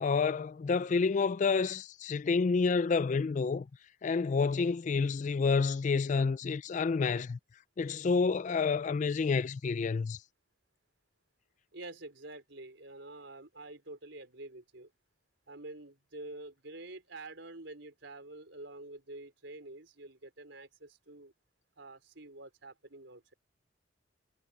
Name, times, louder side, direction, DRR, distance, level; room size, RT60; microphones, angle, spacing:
voice 1, 0.0-3.7 4.0-7.4 7.8-10.2, left 4 dB, 40° left, 0.3 m, -29 dB
voice 2, 11.7-14.9 15.5-21.3 21.8-23.3, right 2 dB, 65° right, 4.6 m, -48 dB
head